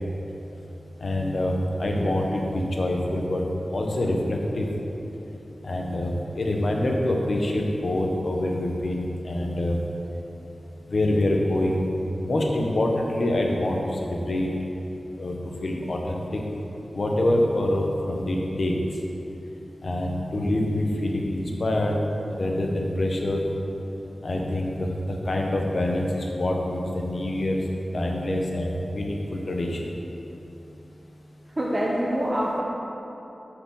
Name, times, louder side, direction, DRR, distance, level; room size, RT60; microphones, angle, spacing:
voice 1, 1.0-3.4 3.7-4.7 5.6-9.8 10.9-11.9 12.2-14.5 15.2-15.4 15.6-16.4 16.9-18.7 19.8-21.9 22.3-23.4 24.2-27.6 27.9-29.8, left 1 dB, 55° left, 0 dB, 1.0 m, -25 dB
voice 2, 31.6-32.6, equal, 25° right, -5 dB, 0.9 m, -25 dB
7.0 x 5.0 x 6.4 m, 3.0 s
wide cardioid pair, 105°, 0 cm